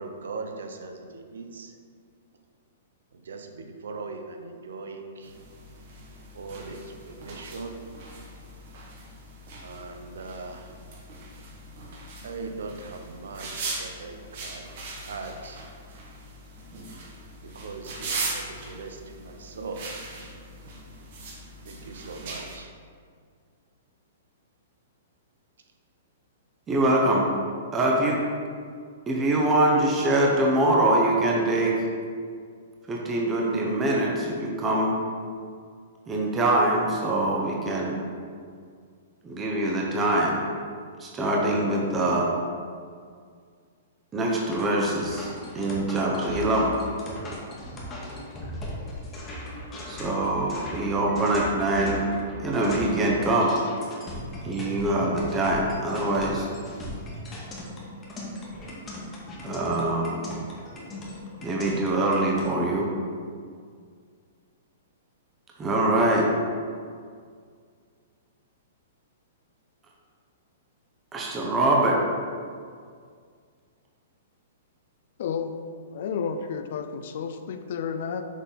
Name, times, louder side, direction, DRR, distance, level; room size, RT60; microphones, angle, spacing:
voice 1, 0.0-1.8 3.1-5.4 6.3-7.9 9.6-10.7 12.2-15.7 17.4-19.9 21.6-22.7, right 3 dB, 85° right, 5 dB, 0.7 m, -40 dB
sound 1, 5.2-22.6, right 2 dB, 55° right, 1.4 m, -39 dB
voice 2, 26.7-27.3 27.7-28.2 29.1-31.7 32.9-35.0 36.1-38.0 39.2-40.4 41.0-42.3 44.1-46.8 49.9-52.0 52.4-53.6 54.4-56.5 59.4-60.2 61.4-62.9 65.6-66.3 71.1-72.0, right 1 dB, 15° right, -2 dB, 0.7 m, -24 dB
sound 2, 44.5-62.5, left 1 dB, 20° left, 1.1 m, -38 dB
voice 3, 75.2-75.6 75.9-78.3, left 6 dB, 60° left, 8 dB, 0.4 m, -31 dB
6.2 x 3.8 x 4.0 m, 2.1 s
hypercardioid pair, 150°, 0 cm